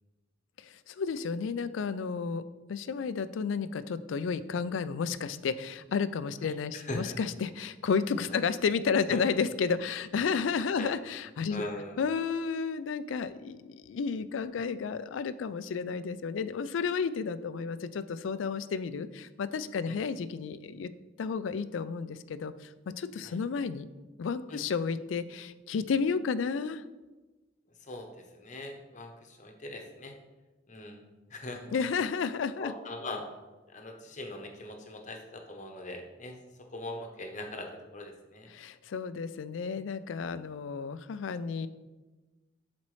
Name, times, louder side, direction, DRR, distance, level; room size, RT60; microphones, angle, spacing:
voice 1, 0.6-2.4 2.7-11.6 12.0-20.9 21.2-23.9 24.2-26.8 31.7-32.7 38.5-41.7, left 5 dB, 80° left, 14 dB, 0.4 m, -32 dB
voice 2, 6.4-7.2 8.3-8.4 9.1-9.2 10.7-10.9 11.5-12.0 19.8-20.0 23.2-23.4 24.5-24.6 27.8-30.1 30.7-31.7 32.6-33.2 33.7-36.4 36.7-38.5, left 1 dB, 40° left, 3 dB, 0.9 m, -41 dB
11.5 x 4.2 x 3.2 m, 1.2 s
head